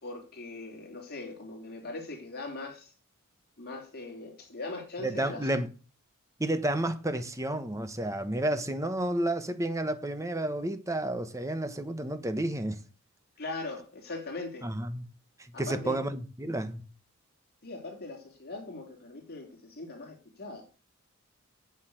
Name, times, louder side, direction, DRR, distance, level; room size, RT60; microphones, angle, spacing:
voice 1, 0.0-2.9 3.6-5.5 13.4-14.7 15.5-16.0 17.6-20.7, left 3 dB, 45° left, 3.5 m, -40 dB
voice 2, 5.0-5.7 6.4-12.8 14.6-15.0 15.4-16.9, right 1 dB, 15° right, 1.2 m, -31 dB
8.3 x 8.1 x 8.0 m
head